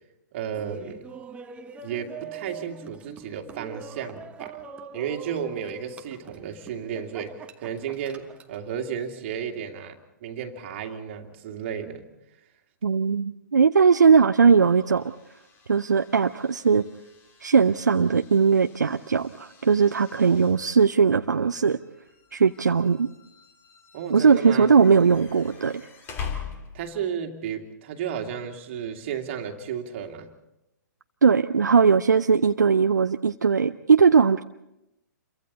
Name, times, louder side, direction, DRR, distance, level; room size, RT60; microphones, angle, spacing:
voice 1, 0.3-1.0 1.8-4.6 4.9-12.1 20.2-20.5 23.9-24.7 26.7-30.3, right 8 dB, 40° right, 4 dB, 2.3 m, -33 dB
Laughter, 0.5-8.6, right 7 dB, 10° right, 1.1 m, -43 dB
voice 2, 12.8-15.1 15.7-16.8 17.4-21.8 22.3-23.1 24.1-25.8 31.2-34.4, right 5 dB, 70° right, 8 dB, 0.6 m, -19 dB
sound 1, 14.3-27.1, left 7 dB, 20° left, 2.4 m, -44 dB
28.5 x 23.5 x 4.1 m, 0.88 s
figure-of-eight pair, 120°, 10 cm